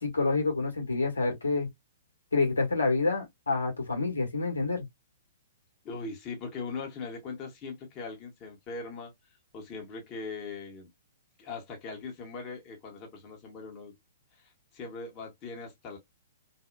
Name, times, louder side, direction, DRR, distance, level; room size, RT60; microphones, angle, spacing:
voice 1, 0.0-1.7 2.3-4.8, left 3 dB, 85° left, 1.4 m, -28 dB
voice 2, 5.8-9.1 9.5-10.9 11.4-13.9 14.4-16.0, left 4 dB, 30° left, 1.2 m, -40 dB
2.7 x 2.4 x 2.2 m
hypercardioid pair, 125°, 0 cm